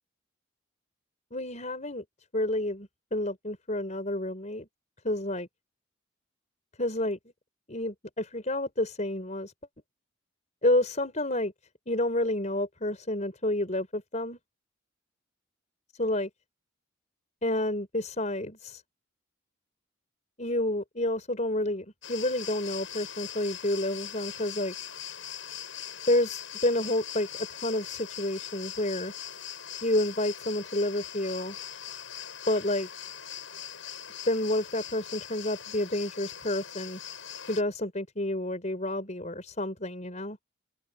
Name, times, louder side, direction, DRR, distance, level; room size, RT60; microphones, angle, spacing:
voice 1, 1.3-2.0 2.3-4.7 5.0-5.5 6.8-7.2 7.7-9.5 10.6-11.5 11.9-14.4 16.0-16.3 17.4-18.8 20.4-24.7 26.1-29.1 29.8-31.6 32.5-32.9 34.2-37.0 37.5-40.4, left 1 dB, 35° left, 5.0 m, -29 dB
sound 1, 22.0-37.6, left 10 dB, 75° left, 7.3 m, -41 dB
open air
head